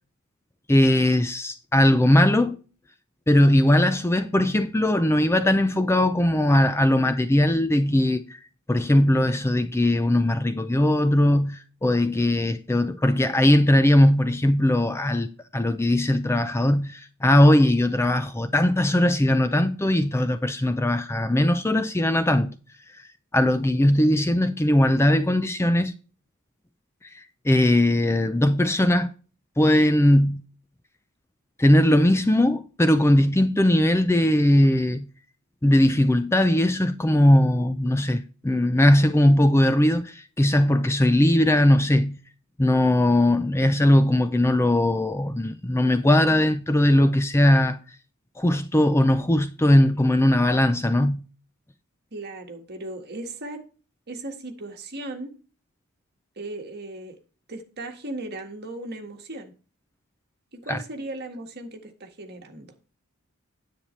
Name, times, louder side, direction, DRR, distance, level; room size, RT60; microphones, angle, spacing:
voice 1, 0.7-2.6 3.3-8.4 8.7-15.3 15.5-22.5 22.9-23.0 23.3-25.9 27.0-29.1 29.6-30.4 31.6-35.1 35.6-42.2 42.6-47.8 48.4-51.2 60.7-60.8, left 1 dB, 10° left, 0.5 m, -20 dB
voice 2, 52.1-53.6 54.1-55.3 56.4-57.2 57.5-59.5 60.5-62.7, right 2 dB, 45° right, 1.7 m, -37 dB
9.9 x 8.6 x 3.2 m
head